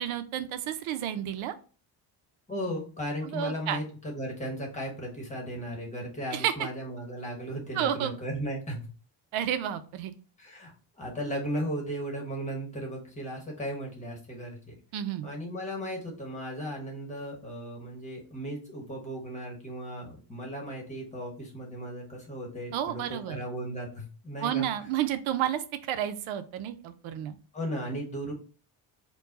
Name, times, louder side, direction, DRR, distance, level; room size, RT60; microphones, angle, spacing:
voice 1, 0.0-1.5 3.3-3.8 6.3-6.5 7.8-8.2 9.3-10.1 14.9-15.3 22.7-23.4 24.4-27.4, right 10 dB, 85° right, 11 dB, 0.7 m, -31 dB
voice 2, 2.5-8.9 10.4-14.7 15.2-24.7 27.5-28.3, equal, 15° left, -1 dB, 1.1 m, -36 dB
4.6 x 2.3 x 3.9 m, 0.38 s
cardioid pair, 170°, 47 cm